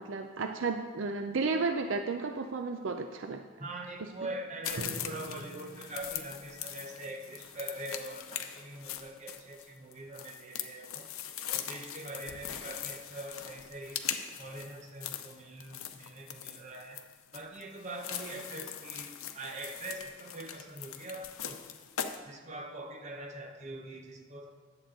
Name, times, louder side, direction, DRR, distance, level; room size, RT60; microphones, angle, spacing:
voice 1, 0.0-3.4, right 4 dB, 65° right, 6 dB, 0.5 m, -33 dB
voice 2, 3.6-11.1 11.5-14.0 14.4-17.1 17.3-21.6 22.3-24.5, right 1 dB, 35° right, 3 dB, 0.9 m, -43 dB
sound 1, 4.6-22.2, left 9 dB, 90° left, 0.6 m, -41 dB
Drum, 4.8-8.5, right 2 dB, 80° right, 0.8 m, -47 dB
10.0 x 7.8 x 3.8 m, 1.5 s
head